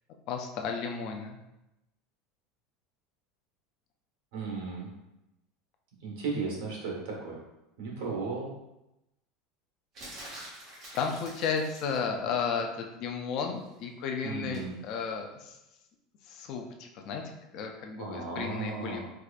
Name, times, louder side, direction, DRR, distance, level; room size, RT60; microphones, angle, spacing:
voice 1, 0.3-1.4 10.7-15.6 16.3-17.2 17.5-19.0, left 6 dB, 40° left, 3 dB, 0.4 m, -33 dB
voice 2, 4.3-4.9 6.0-7.4 7.8-8.5 14.2-14.8 18.0-19.0, right 4 dB, 75° right, -2 dB, 1.3 m, -35 dB
sound 1, 9.9-12.0 14.5-14.7, right 1 dB, 35° right, 1.4 m, -46 dB
4.5 x 2.5 x 2.4 m, 0.92 s
cardioid pair, 180°, 0 cm